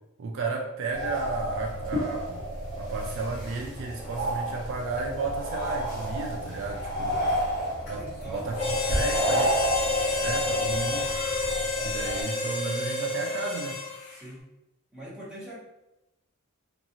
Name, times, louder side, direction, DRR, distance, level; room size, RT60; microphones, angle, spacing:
voice 1, 0.2-2.5 2.8-7.2 7.9-9.5 10.2-11.1 11.8-13.8, right 3 dB, 60° right, 1 dB, 0.3 m, -33 dB
sound 1, 0.9-12.2, right 1 dB, 55° left, 1.4 m, -31 dB
voice 2, 6.9-7.5 7.8-8.6 8.9-9.4 14.1-14.5 14.9-15.6, equal, 5° right, -10 dB, 1.2 m, -41 dB
Harmonica, 8.6-14.2, left 3 dB, 80° left, 0.5 m, -29 dB
2.7 x 2.4 x 2.7 m, 0.92 s
head